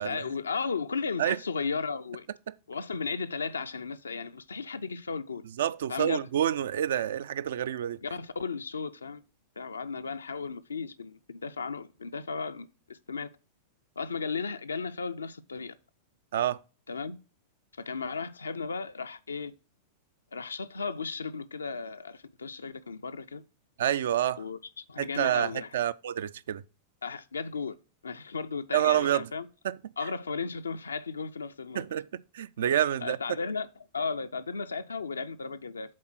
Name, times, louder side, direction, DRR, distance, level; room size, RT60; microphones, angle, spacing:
voice 1, 0.0-2.3 2.7-5.4 5.9-6.3 8.0-9.2 9.6-13.3 14.0-15.8 16.9-17.2 17.8-19.5 20.3-23.4 24.4-25.7 27.0-27.8 28.0-29.5 30.0-31.9 33.0-33.7 33.9-35.9, left 5 dB, 75° left, 0.4 m, -35 dB
voice 2, 5.6-8.0 16.3-16.6 23.8-24.4 25.0-26.6 28.7-29.3 29.6-29.9 31.7-33.2, right 10 dB, 60° right, 0.3 m, -28 dB
7.5 x 3.8 x 6.0 m
figure-of-eight pair, 90°, 0 cm